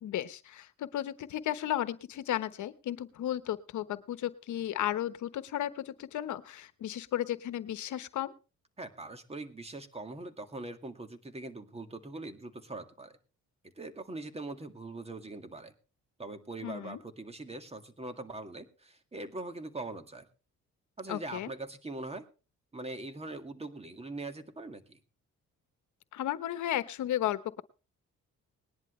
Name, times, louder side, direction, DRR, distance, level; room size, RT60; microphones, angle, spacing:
voice 1, 0.0-8.3 16.6-17.0 21.1-21.5 26.1-27.6, left 12 dB, 75° left, 13 dB, 1.1 m, -34 dB
voice 2, 8.8-13.2 13.6-15.7 16.2-20.3 21.0-22.2 22.7-25.0, right 2 dB, 20° right, 8 dB, 2.1 m, -42 dB
20.0 x 11.0 x 3.2 m, 0.33 s
cardioid pair, 90°, 30 cm